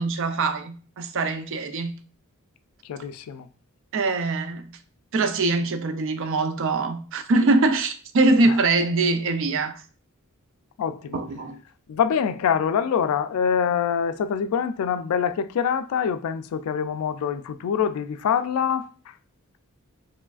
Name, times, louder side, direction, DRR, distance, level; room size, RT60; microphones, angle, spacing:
voice 1, 0.0-2.0 3.9-4.8 5.1-9.8 11.1-11.6, right 3 dB, 60° right, 0.4 m, -23 dB
voice 2, 2.9-3.5 8.4-8.6 10.8-11.2 11.9-18.9, left 7 dB, 85° left, 0.3 m, -25 dB
4.7 x 3.0 x 2.4 m
head